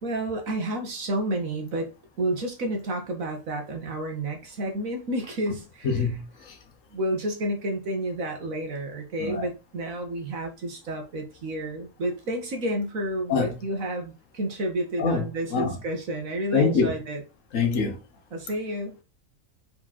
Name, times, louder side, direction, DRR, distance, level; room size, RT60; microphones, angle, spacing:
voice 1, 0.0-1.9 2.2-5.9 6.9-17.2 18.3-19.0, right 1 dB, 90° right, 1.9 m, -30 dB
voice 2, 5.8-6.6 9.2-9.5 13.3-13.6 15.0-15.8 16.5-16.9 17.5-18.0, left 5 dB, 70° left, 1.5 m, -25 dB
5.1 x 5.1 x 4.1 m
omnidirectional pair, 1.4 m